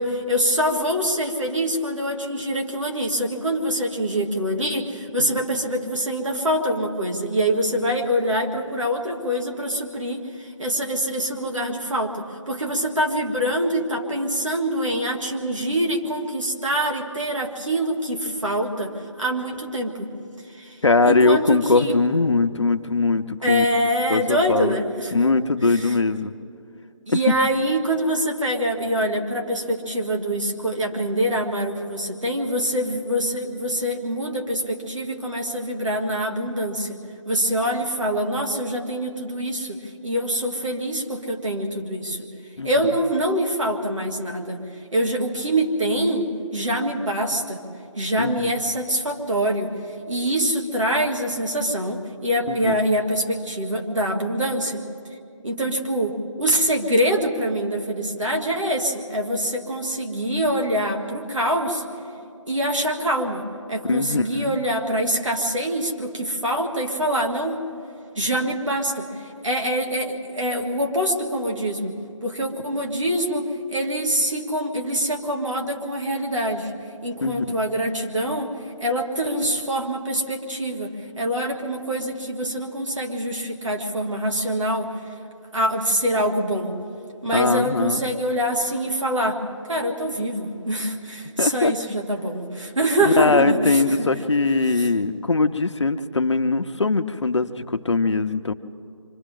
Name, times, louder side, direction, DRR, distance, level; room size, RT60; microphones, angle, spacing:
voice 1, 0.0-20.1 20.5-22.0 23.4-25.2 25.7-25.9 27.1-37.0 37.3-42.3 42.6-44.6 44.9-47.6 48.0-49.7 50.1-54.8 55.4-61.8 62.5-67.6 68.1-71.9 72.2-76.7 77.0-78.5 78.8-85.1 85.5-86.7 87.2-89.4 89.7-94.1 94.7-94.9, equal, 70° right, 1 dB, 2.8 m, -25 dB
voice 2, 20.8-23.7 24.1-24.8 25.1-26.3 42.6-42.7 48.2-48.5 52.5-52.8 63.9-64.6 77.2-77.4 87.3-88.0 91.4-91.7 93.0-98.5, left 3 dB, 60° left, 8 dB, 0.8 m, -21 dB
29.5 x 25.5 x 3.8 m, 2.6 s
figure-of-eight pair, 170°, 17 cm